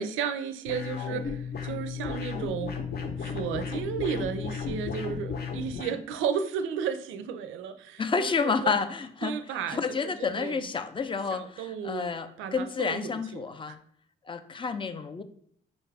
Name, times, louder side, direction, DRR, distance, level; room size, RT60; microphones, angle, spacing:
voice 1, 0.0-2.7 3.2-8.7 9.2-10.7 11.3-13.7, right 7 dB, 85° right, 10 dB, 0.4 m, -34 dB
sound 1, 0.7-6.0, left 6 dB, 55° left, 0.8 m, -34 dB
voice 2, 8.0-13.8 14.3-15.2, left 5 dB, 25° left, 10 dB, 0.4 m, -30 dB
5.2 x 2.3 x 3.3 m, 0.62 s
cardioid pair, 90°, 20 cm